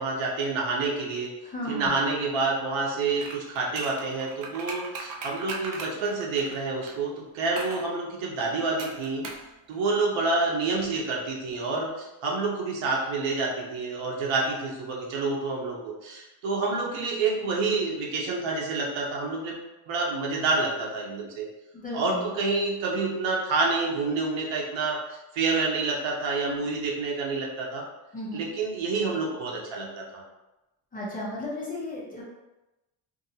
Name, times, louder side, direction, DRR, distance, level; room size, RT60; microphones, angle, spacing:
voice 1, 0.0-1.3 1.7-9.2 9.7-19.6 19.9-21.5 21.9-25.0 25.3-27.8 28.3-30.2, right 3 dB, 75° right, -1 dB, 0.8 m, -28 dB
voice 2, 1.4-1.9 21.7-22.3 28.1-28.5 30.9-32.2, left 1 dB, 20° left, -6 dB, 0.7 m, -34 dB
sound 1, 3.2-7.0 7.6-7.9 8.8-9.5 9.7-9.8, right 4 dB, 45° right, 0.5 m, -38 dB
2.7 x 2.5 x 2.7 m, 0.99 s
cardioid pair, 150°, 47 cm